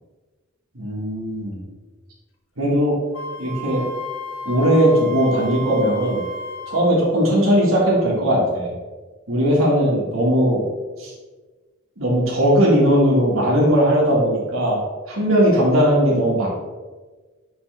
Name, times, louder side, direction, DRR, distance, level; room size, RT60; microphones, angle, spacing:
voice 1, 0.7-1.6 2.6-3.0 3.4-3.9 4.4-6.2 6.7-8.7 9.3-10.6 11.0-11.1 12.0-14.8 15.1-16.5, equal, 90° right, -4 dB, 1.8 m, -18 dB
Wind instrument woodwind instrument, 3.1-6.9, equal, 70° left, 0.7 m, -33 dB
7.1 x 5.1 x 3.4 m, 1.3 s
head